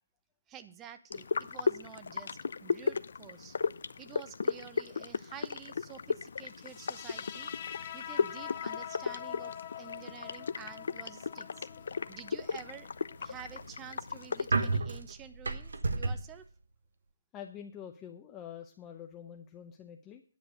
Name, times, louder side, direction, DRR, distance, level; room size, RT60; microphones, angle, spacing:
voice 1, 0.5-3.6 4.0-7.5 7.9-9.5 9.8-11.7 12.1-12.9 13.2-16.4, right 8 dB, 15° right, 11 dB, 0.7 m, -50 dB
sound 1, 1.1-14.8, left 5 dB, 60° left, 0.6 m, -36 dB
sound 2, 6.6-13.6, left 10 dB, 30° left, 1.1 m, -45 dB
sound 3, 13.2-16.4, right 3 dB, 75° right, 1.3 m, -32 dB
voice 2, 17.3-20.2, left 9 dB, 15° left, 4 dB, 0.7 m, -46 dB
10.5 x 6.6 x 6.6 m, 0.39 s
hypercardioid pair, 165°, 0 cm